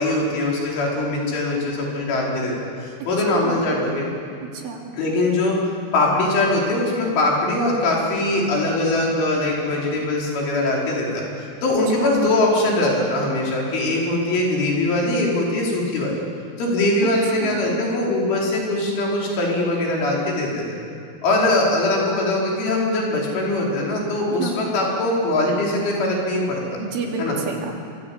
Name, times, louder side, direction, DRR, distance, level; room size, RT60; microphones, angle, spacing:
voice 1, 0.0-4.1 4.9-16.2 16.6-20.8 21.2-26.6 27.2-27.4, left 2 dB, 70° left, -2 dB, 7.1 m, -22 dB
voice 2, 17.4-17.8 24.3-24.6 26.8-27.7, right 4 dB, 75° right, 1 dB, 5.4 m, -29 dB
25.0 x 24.5 x 8.6 m, 2.4 s
omnidirectional pair, 5.7 m